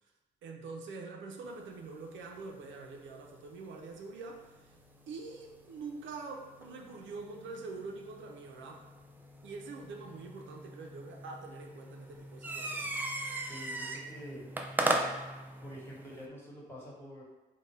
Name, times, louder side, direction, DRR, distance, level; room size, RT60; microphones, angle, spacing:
voice 1, 0.4-4.8 5.1-8.8 9.4-13.1, right 4 dB, 70° right, 2 dB, 0.5 m, -45 dB
sound 1, 1.4-16.3, right 1 dB, 10° right, 0.4 m, -40 dB
voice 2, 13.3-14.4 15.6-17.2, equal, 10° left, -5 dB, 1.3 m, -47 dB
4.0 x 2.1 x 3.3 m, 1.1 s
cardioid pair, 90°, 20 cm